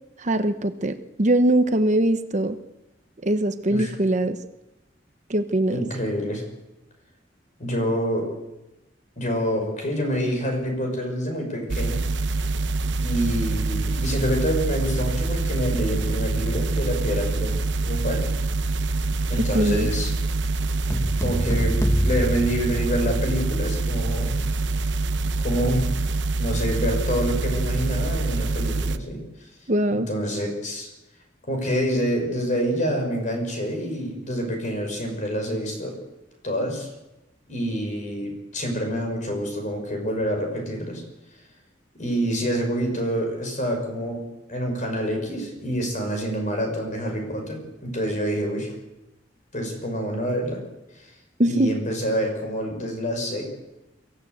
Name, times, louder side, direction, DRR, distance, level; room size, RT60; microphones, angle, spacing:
voice 1, 0.2-2.6 3.2-4.4 5.3-5.9 19.5-19.9 29.7-30.1 51.4-51.7, right 1 dB, 40° right, 9 dB, 1.0 m, -22 dB
voice 2, 5.7-6.4 7.6-8.3 9.2-12.1 13.0-17.6 17.8-18.3 19.3-20.1 21.2-24.4 25.4-25.9 26.4-29.2 29.9-30.9 31.5-36.0 36.4-36.9 37.5-41.0 41.9-44.2 44.5-48.7 49.5-50.6 51.4-53.4, equal, 45° left, 3 dB, 6.1 m, -27 dB
sound 1, 11.7-29.0, right 3 dB, 80° right, 0.9 m, -25 dB
sound 2, 20.9-23.4, equal, 15° left, 1.1 m, -28 dB
23.0 x 15.0 x 8.1 m, 0.96 s
head